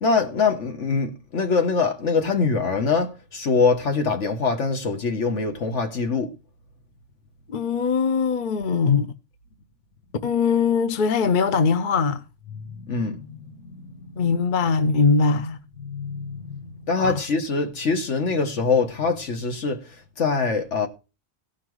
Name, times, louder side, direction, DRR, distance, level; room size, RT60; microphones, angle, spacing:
voice 1, 0.0-6.3 12.6-13.4 13.6-14.2 15.8-19.8 20.2-20.9, left 4 dB, 70° left, 1.7 m, -24 dB
voice 2, 7.5-9.1 10.2-12.2 14.2-15.6 17.0-17.2, left 5 dB, 45° left, 0.9 m, -21 dB
17.0 x 5.8 x 4.7 m
omnidirectional pair, 1.3 m